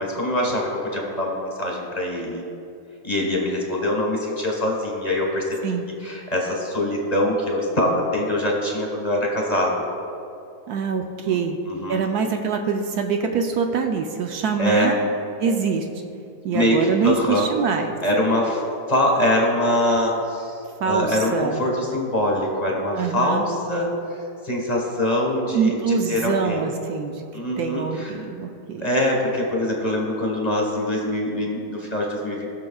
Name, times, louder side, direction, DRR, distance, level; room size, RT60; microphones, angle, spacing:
voice 1, 0.0-2.4 3.0-5.6 6.0-9.8 11.3-11.4 11.7-12.0 14.6-14.9 16.5-17.5 18.0-18.6 18.9-20.5 20.8-23.9 24.1-26.7 27.3-28.2 28.8-32.5, left 1 dB, 25° left, -2 dB, 1.1 m, -23 dB
voice 2, 10.7-11.6 11.9-15.0 15.4-15.9 16.4-17.9 20.8-21.6 22.9-23.5 25.5-27.2 27.6-28.9, right 5 dB, 70° right, 4 dB, 1.0 m, -24 dB
19.5 x 6.6 x 2.3 m, 2.6 s
omnidirectional pair, 2.0 m